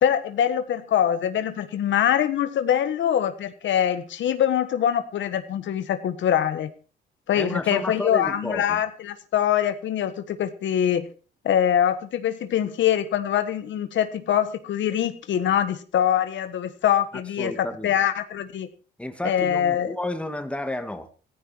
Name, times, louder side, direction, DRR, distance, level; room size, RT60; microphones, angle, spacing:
voice 1, 0.0-6.7 7.3-11.1 11.4-18.7 19.2-19.9, left 10 dB, 70° left, 10 dB, 1.4 m, -23 dB
voice 2, 7.3-8.8 17.4-17.9 19.0-21.1, left 1 dB, 5° left, 8 dB, 2.1 m, -31 dB
15.0 x 14.0 x 4.6 m, 0.38 s
cardioid pair, 90°, 20 cm